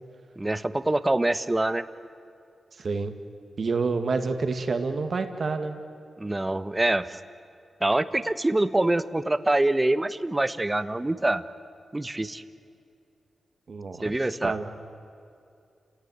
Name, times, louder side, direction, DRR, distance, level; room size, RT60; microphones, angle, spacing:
voice 1, 0.4-1.8 6.2-7.2 7.8-11.4 11.9-12.4 14.0-14.5, right 2 dB, 20° right, 12 dB, 1.1 m, -25 dB
voice 2, 2.8-3.1 3.6-5.8 13.7-14.1 14.4-14.7, right 4 dB, 60° right, 7 dB, 2.0 m, -28 dB
30.0 x 17.0 x 9.4 m, 2.5 s
cardioid pair, 55°, 0 cm